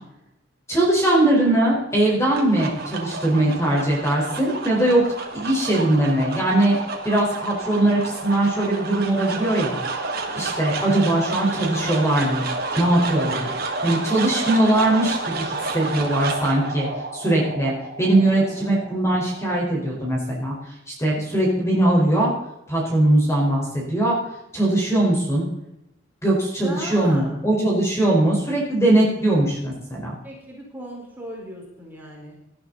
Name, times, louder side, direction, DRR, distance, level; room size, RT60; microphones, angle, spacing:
voice 1, 0.7-5.1 5.3-6.8 7.0-9.8 10.4-12.5 12.8-13.5 13.8-16.9 17.1-17.7 18.0-20.5 20.9-22.3 22.7-24.2 24.5-25.5 26.2-30.1, right 1 dB, 15° left, -3 dB, 4.6 m, -20 dB
sound 1, 2.0-20.3, right 3 dB, 50° right, 2.6 m, -30 dB
voice 2, 18.2-18.8 26.6-27.4 30.2-32.4, equal, 10° right, -3 dB, 4.6 m, -37 dB
19.0 x 12.0 x 4.1 m, 0.88 s
head